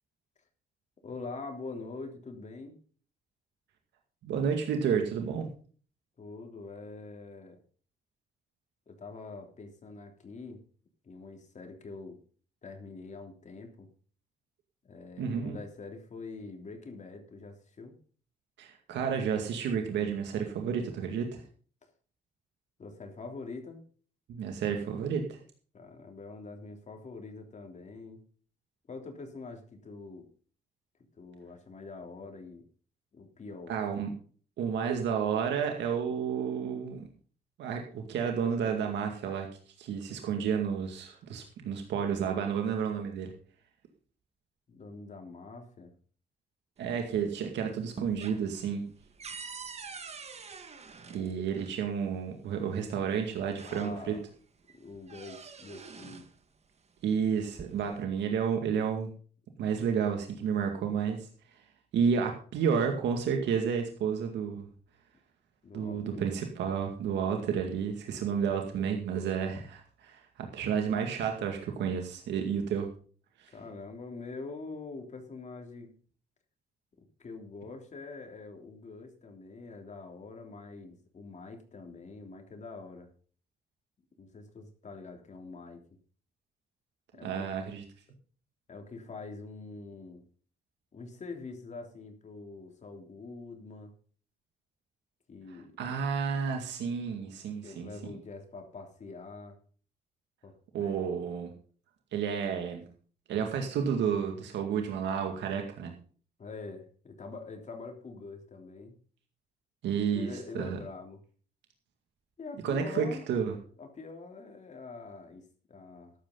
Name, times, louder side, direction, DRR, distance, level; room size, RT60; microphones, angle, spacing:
voice 1, 1.0-2.8 6.2-7.6 8.9-10.6 11.0-12.2 12.6-13.9 14.8-17.9 21.8-21.9 22.8-23.8 25.7-28.2 28.9-30.3 31.1-32.6 33.1-33.7 44.7-45.9 51.0-51.5 53.7-54.2 54.7-56.3 65.6-66.3 73.5-75.9 77.2-83.1 84.2-86.0 87.1-87.5 88.7-90.2 90.9-93.9 95.3-95.8 97.6-99.6 100.4-100.5 100.8-101.3 106.4-109.0 110.1-111.2 112.4-113.2 113.8-116.1, left 3 dB, 40° left, 3 dB, 3.3 m, -44 dB
voice 2, 4.2-5.5 15.2-15.6 18.6-21.4 24.3-25.4 33.7-34.1 34.6-37.1 37.6-39.5 39.8-43.3 46.8-48.8 51.1-54.1 57.0-59.1 59.6-61.3 61.9-64.6 65.7-72.9 73.4-73.5 87.2-87.8 95.8-98.1 100.7-101.5 102.1-102.8 103.3-105.9 109.8-110.3 110.5-110.8 112.6-113.5, right 7 dB, 90° right, 3 dB, 2.2 m, -31 dB
sound 1, 46.8-47.5 47.8-51.8 52.9-53.0 53.4-54.3 54.7-56.3 57.3-58.1, right 5 dB, 35° right, 1.6 m, -46 dB
14.0 x 11.5 x 3.9 m, 0.42 s
cardioid pair, 100°, 18 cm